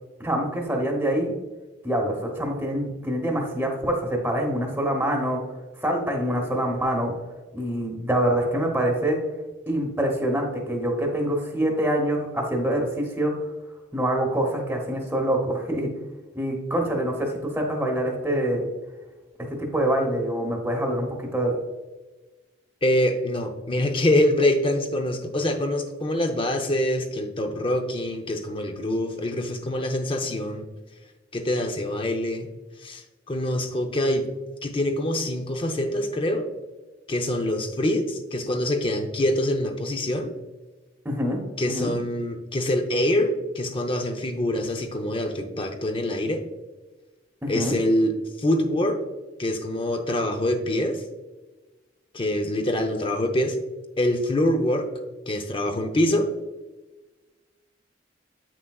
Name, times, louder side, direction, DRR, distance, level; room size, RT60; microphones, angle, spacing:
voice 1, 0.2-1.3 1.8-5.4 5.8-7.1 7.5-9.2 9.7-13.3 13.9-15.9 16.3-18.7 19.5-21.5 41.0-41.4 41.7-41.9 47.4-47.7, right 1 dB, 10° right, 0 dB, 1.0 m, -25 dB
voice 2, 22.8-30.7 31.3-32.5 32.8-34.3 34.6-36.5 37.1-40.3 41.6-46.4 47.5-49.0 49.4-51.0 52.1-53.6 54.0-54.9 55.3-56.3, left 1 dB, 30° left, 5 dB, 0.6 m, -25 dB
8.1 x 6.0 x 2.3 m, 1.2 s
head